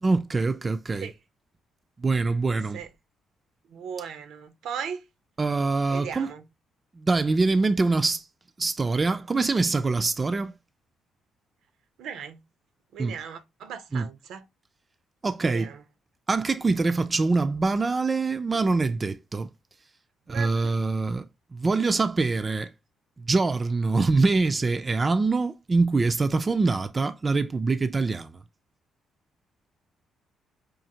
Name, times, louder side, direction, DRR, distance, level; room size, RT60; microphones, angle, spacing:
voice 1, 0.0-1.1 2.0-2.8 5.4-6.3 7.0-8.2 8.6-10.5 13.0-13.1 13.9-14.1 15.2-15.7 16.3-19.5 20.3-21.3 21.5-22.7 23.2-28.3, right 3 dB, 30° right, 0.3 m, -24 dB
voice 2, 3.7-5.0 5.9-6.4 12.0-12.4 12.9-14.4 15.4-15.8 20.3-20.8, right 7 dB, 80° right, 0.6 m, -37 dB
5.0 x 2.5 x 2.8 m
cardioid pair, 90°, 0 cm